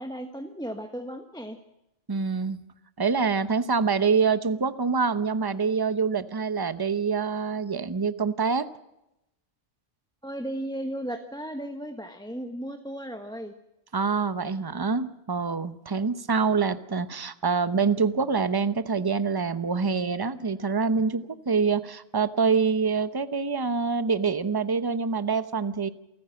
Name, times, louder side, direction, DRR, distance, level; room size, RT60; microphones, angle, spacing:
voice 1, 0.0-1.6 10.2-13.5, right 1 dB, 5° left, 6 dB, 1.2 m, -35 dB
voice 2, 2.1-2.6 3.0-8.7 13.9-25.9, right 5 dB, 20° right, 12 dB, 0.8 m, -25 dB
28.0 x 14.0 x 7.8 m, 0.89 s
omnidirectional pair, 1.2 m